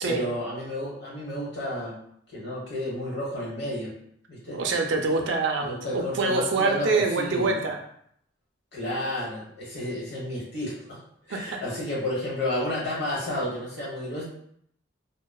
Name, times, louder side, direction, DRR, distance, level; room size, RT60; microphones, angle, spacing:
voice 1, 0.0-2.0 2.3-3.9 4.3-4.6 5.6-7.6 8.7-11.0 11.3-14.2, left 1 dB, 60° left, -5 dB, 1.1 m, -31 dB
voice 2, 4.5-7.8 11.3-11.6, right 3 dB, 70° right, 2 dB, 0.4 m, -25 dB
2.9 x 2.0 x 2.3 m, 0.67 s
head